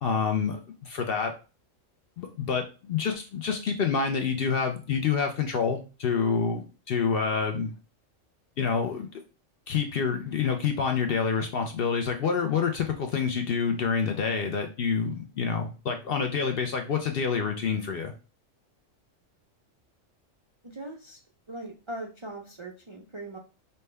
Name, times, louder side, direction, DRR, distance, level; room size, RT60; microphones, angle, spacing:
voice 1, 0.0-1.3 2.2-7.7 8.6-9.2 9.7-18.1, left 6 dB, 60° left, 5 dB, 0.6 m, -27 dB
voice 2, 20.6-21.2 21.5-23.4, right 1 dB, 50° right, 0 dB, 0.3 m, -40 dB
5.5 x 2.1 x 3.3 m, 0.33 s
omnidirectional pair, 1.3 m